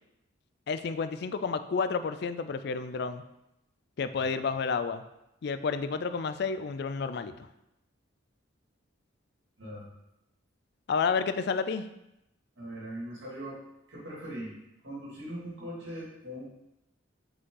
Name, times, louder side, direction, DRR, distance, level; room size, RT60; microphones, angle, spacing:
voice 1, 0.7-3.2 4.0-5.0 5.4-7.5 10.9-11.9, left 5 dB, 55° left, 11 dB, 0.4 m, -30 dB
voice 2, 9.6-9.9 12.6-13.6 13.9-14.5 14.8-16.5, right 1 dB, 65° right, -5 dB, 2.4 m, -40 dB
6.1 x 5.1 x 3.9 m, 0.87 s
head